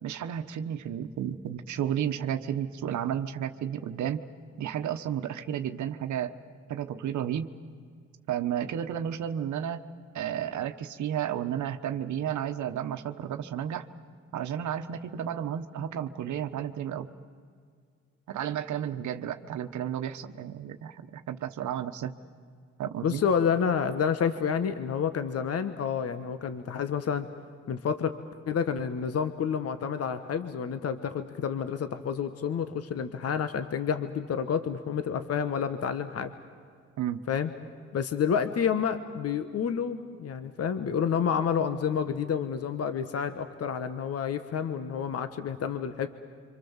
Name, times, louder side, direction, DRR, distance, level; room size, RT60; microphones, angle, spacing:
voice 1, 0.0-4.2 4.6-6.4 6.7-7.5 8.3-9.8 10.1-13.9 14.3-17.1 18.3-22.2 22.8-23.2 37.0-37.2, right 9 dB, 70° right, 9 dB, 1.2 m, -32 dB
voice 2, 23.0-27.3 27.7-28.2 28.5-36.3 37.3-37.5 37.9-46.1, left 7 dB, 55° left, 10 dB, 1.4 m, -29 dB
27.0 x 25.5 x 7.3 m, 2.1 s
cardioid pair, 90°, 30 cm